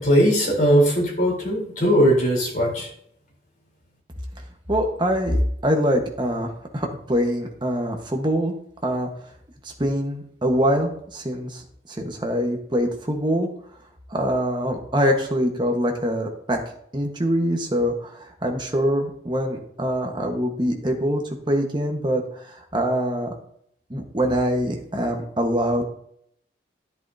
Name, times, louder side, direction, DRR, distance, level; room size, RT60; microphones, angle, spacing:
voice 1, 0.0-2.9, equal, 45° left, -3 dB, 3.8 m, -19 dB
voice 2, 4.7-5.4 5.6-8.5 8.8-9.1 9.6-11.6 11.9-13.5 14.1-16.6 16.9-23.3 23.9-25.9, equal, 25° right, 2 dB, 1.3 m, -24 dB
10.5 x 8.2 x 2.8 m, 0.67 s
head